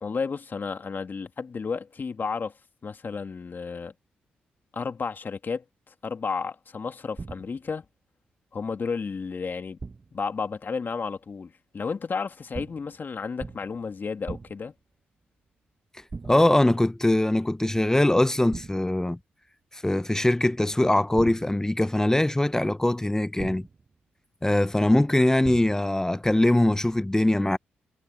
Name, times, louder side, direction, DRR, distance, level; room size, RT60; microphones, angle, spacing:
voice 1, 0.0-2.5 2.8-3.9 4.7-5.6 6.0-7.8 8.5-9.8 10.1-14.7, left 5 dB, 45° left, 2.3 m, -32 dB
sound 1, 7.2-7.7 9.8-10.3 12.5-13.0 13.4-13.8 14.3-14.8 16.1-16.7 18.5-19.0 21.2-21.8 23.4-23.9 25.4-26.0, right 4 dB, 35° right, 1.1 m, -39 dB
voice 2, 16.2-19.2 19.7-23.7 24.4-27.6, left 1 dB, 10° left, 0.7 m, -22 dB
hypercardioid pair, 45°, 5 cm